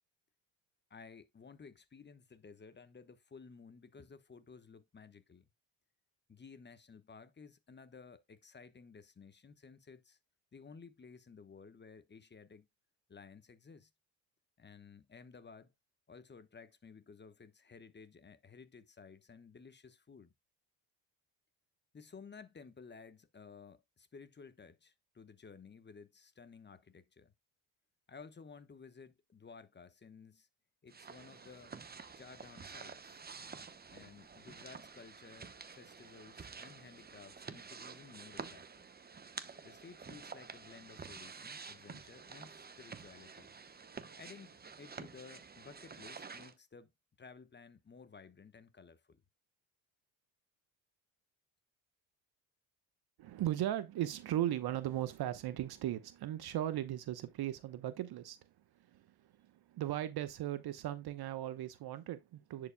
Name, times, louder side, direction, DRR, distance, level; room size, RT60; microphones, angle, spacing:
voice 1, 0.9-5.5 6.3-10.2 10.5-12.7 13.1-13.9 14.6-15.7 16.1-20.3 21.9-27.3 28.1-30.5 30.8-31.7 32.2-33.3 33.9-38.9 39.6-43.6 44.2-46.9 47.2-49.2, left 5 dB, 25° left, 1.1 m, -55 dB
sound 1, 30.9-46.5, right 5 dB, 20° right, 0.9 m, -50 dB
voice 2, 53.2-58.5 58.9-62.7, right 12 dB, 55° right, 0.9 m, -37 dB
10.5 x 5.0 x 2.2 m
supercardioid pair, 80°, 46 cm